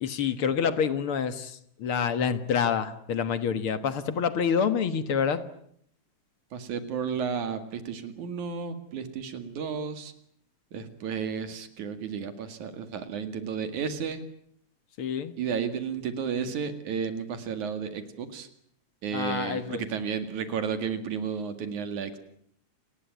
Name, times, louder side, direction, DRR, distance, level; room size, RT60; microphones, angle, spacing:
voice 1, 0.0-5.4 15.0-15.3 19.1-19.8, left 7 dB, 50° left, 12 dB, 2.1 m, -27 dB
voice 2, 6.5-10.1 10.7-14.2 15.4-18.5 19.0-22.2, right 6 dB, 75° right, 9 dB, 3.5 m, -32 dB
29.0 x 19.5 x 9.4 m, 0.69 s
omnidirectional pair, 3.4 m